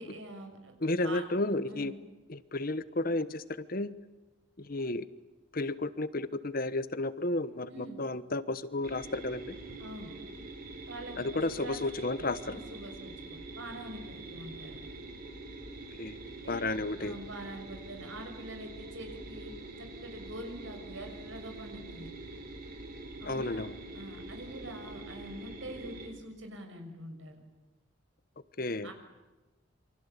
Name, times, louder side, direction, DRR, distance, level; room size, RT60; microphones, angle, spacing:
voice 1, 0.0-0.7 1.0-1.2 1.7-2.0 7.7-8.0 9.8-10.1 10.9-12.1 12.4-14.8 16.4-16.6 17.0-19.5 19.8-22.1 23.2-23.7 23.9-27.3 28.8-28.9, right 1 dB, 75° right, 5 dB, 6.6 m, -45 dB
voice 2, 0.8-1.9 2.3-3.9 4.6-5.1 5.5-9.6 11.2-12.4 16.0-16.2 16.5-17.1 23.2-23.7 28.6-28.9, left 2 dB, 45° left, 14 dB, 1.1 m, -32 dB
sound 1, 8.8-26.1, right 2 dB, 45° right, 4.7 m, -45 dB
28.5 x 24.5 x 8.5 m, 1.1 s
head